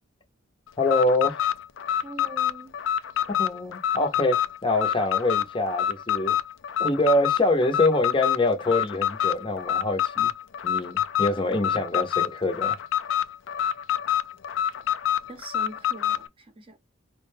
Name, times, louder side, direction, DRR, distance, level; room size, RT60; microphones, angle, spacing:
Alarm, 0.8-16.3, left 10 dB, 75° left, 0.4 m, -26 dB
voice 1, 0.8-1.3 3.4-6.4 6.8-10.3 10.6-12.8, left 2 dB, 25° left, 0.7 m, -25 dB
voice 2, 2.0-2.7 15.3-16.8, right 2 dB, 30° right, 0.7 m, -42 dB
4.7 x 2.1 x 3.2 m
head